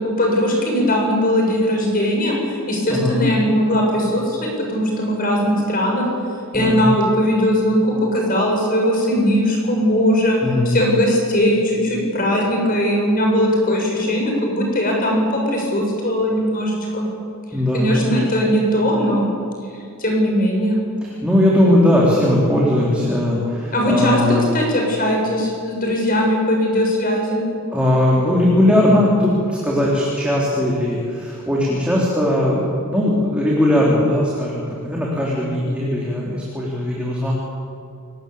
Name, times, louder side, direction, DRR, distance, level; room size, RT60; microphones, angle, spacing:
voice 1, 0.0-6.0 6.5-10.4 10.7-17.1 17.7-19.3 20.0-20.8 23.7-24.2 24.5-27.4, equal, 40° left, 0 dB, 7.2 m, -19 dB
voice 2, 6.5-6.9 10.4-10.9 17.5-18.1 21.0-24.4 27.7-37.3, left 1 dB, 5° right, -5 dB, 3.8 m, -19 dB
28.5 x 19.5 x 8.6 m, 2.4 s
head